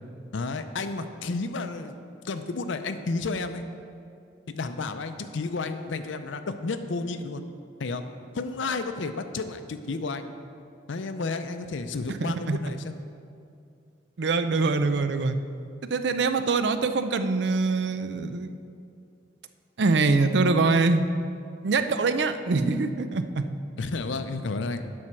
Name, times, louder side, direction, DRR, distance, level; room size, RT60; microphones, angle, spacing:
voice 1, 0.3-3.6 4.5-7.4 7.8-8.0 8.3-10.3 10.9-13.0 23.8-24.8, left 3 dB, 80° left, 9 dB, 0.5 m, -32 dB
voice 2, 12.1-12.6 14.2-15.4 15.9-18.5 19.8-21.0 21.6-23.4, right 3 dB, 65° right, 10 dB, 0.4 m, -24 dB
11.0 x 4.3 x 6.2 m, 2.5 s
head